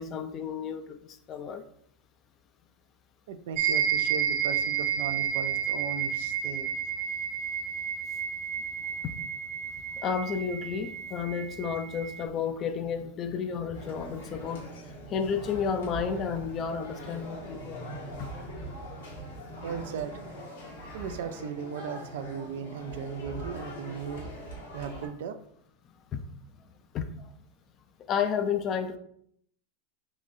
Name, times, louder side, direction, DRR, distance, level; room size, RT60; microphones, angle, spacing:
voice 1, 0.0-1.6 9.0-9.2 9.9-14.7 15.1-17.9 18.2-18.3 21.0-21.1 26.1-26.2 26.9-27.3 28.1-29.0, left 6 dB, 40° left, 9 dB, 0.4 m, -32 dB
voice 2, 3.3-6.7 19.6-20.2 20.9-24.3 24.7-25.4, right 7 dB, 70° right, 9 dB, 0.3 m, -37 dB
sound 1, 3.6-12.2, right 8 dB, 50° right, 1.1 m, -31 dB
sound 2, 13.7-25.1, right 1 dB, 85° left, 1.4 m, -42 dB
3.8 x 3.0 x 2.6 m, 0.66 s
hypercardioid pair, 110°, 0 cm